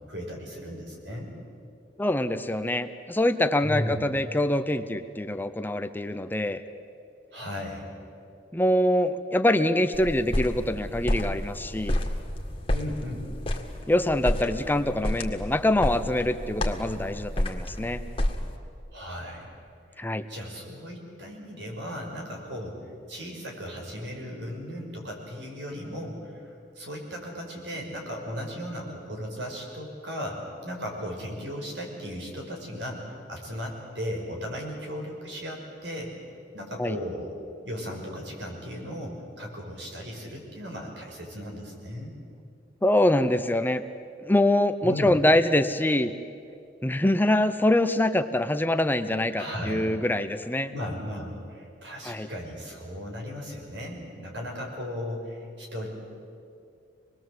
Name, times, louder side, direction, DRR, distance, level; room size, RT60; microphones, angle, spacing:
voice 1, 0.1-1.3 3.6-4.0 7.3-7.9 12.7-13.3 18.9-19.5 19.9-20.0 20.3-22.8 23.1-33.0 33.3-36.1 36.5-37.3 37.6-42.2 44.8-45.2 49.4-49.9 50.7-55.9, equal, 80° right, 0 dB, 5.7 m, -36 dB
voice 2, 2.0-6.6 8.5-12.0 13.9-18.0 20.0-20.3 36.8-37.0 42.8-43.8 44.2-46.1 46.8-50.7 52.0-52.3, left 1 dB, 10° left, 10 dB, 0.6 m, -24 dB
sound 1, 9.9-18.6, left 1 dB, 30° left, 2.0 m, -30 dB
26.0 x 20.5 x 7.9 m, 2.5 s
head